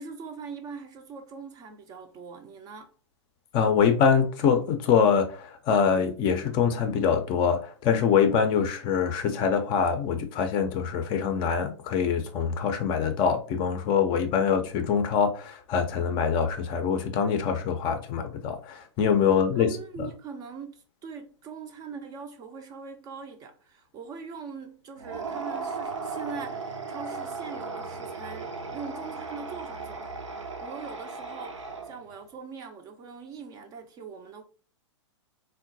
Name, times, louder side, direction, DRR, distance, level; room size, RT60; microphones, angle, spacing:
voice 1, 0.0-2.9 19.6-34.4, right 5 dB, 25° right, 0.4 m, -42 dB
voice 2, 3.5-19.8, left 6 dB, 30° left, 0.5 m, -24 dB
sound 1, 25.0-32.2, right 4 dB, 85° right, 0.6 m, -36 dB
3.6 x 2.2 x 2.6 m
figure-of-eight pair, 110°, 15 cm